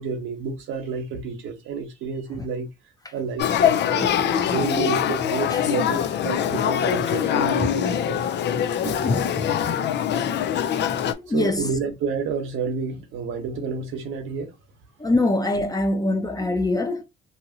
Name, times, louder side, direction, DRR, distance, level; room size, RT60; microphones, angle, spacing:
voice 1, 0.0-2.7 3.1-4.1 4.4-8.3 8.8-9.0 10.8-10.9 11.3-14.5, right 5 dB, 80° right, 0.9 m, -30 dB
Male speech man speaking / Child speech kid speaking / Conversation, 3.4-11.1, left 9 dB, 60° left, 0.4 m, -23 dB
voice 2, 9.0-9.6 11.1-11.7 15.0-17.0, left 2 dB, 20° left, 0.6 m, -24 dB
2.8 x 2.6 x 2.7 m
cardioid pair, 90°, 20 cm